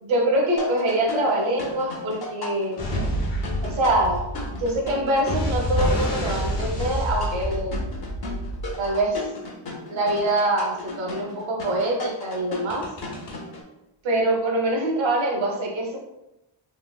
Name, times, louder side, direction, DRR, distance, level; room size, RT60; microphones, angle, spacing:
voice 1, 0.0-2.8 3.6-4.2 4.5-7.8 8.8-9.2 9.9-12.8 14.0-16.0, right 1 dB, 65° right, -1 dB, 0.9 m, -24 dB
sound 1, 0.6-13.6, left 2 dB, 50° left, 0.7 m, -35 dB
sound 2, 2.8-9.2 12.7-13.3, equal, 85° left, 1.0 m, -28 dB
3.2 x 2.8 x 2.2 m, 0.90 s
wide cardioid pair, 110°, 50 cm